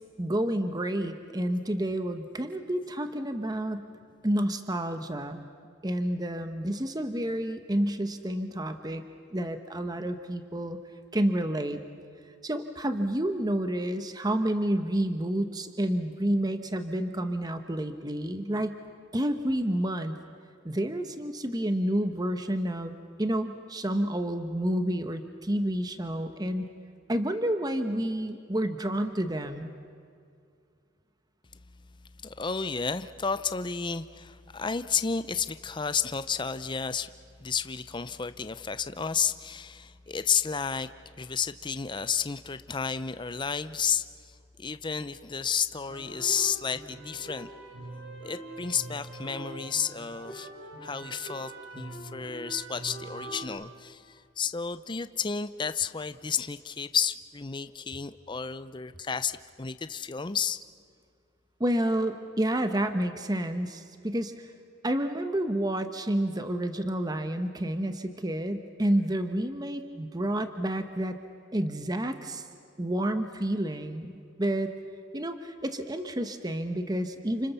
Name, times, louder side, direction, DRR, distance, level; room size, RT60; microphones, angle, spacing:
voice 1, 0.2-3.9 4.2-5.4 5.8-9.0 9.3-10.8 11.1-11.8 12.4-18.8 19.1-20.1 20.6-26.7 27.1-29.7 61.6-64.5 64.8-71.2 71.5-72.5 72.8-74.1 74.4-74.7 75.1-77.5, right 1 dB, 20° right, 8 dB, 1.0 m, -29 dB
voice 2, 32.2-37.1 37.4-47.5 48.2-50.5 50.8-60.6, left 6 dB, 25° left, 12 dB, 0.6 m, -32 dB
sound 1, 45.8-53.4, right 2 dB, 70° right, 6.2 m, -43 dB
29.5 x 27.5 x 7.0 m, 2.3 s
head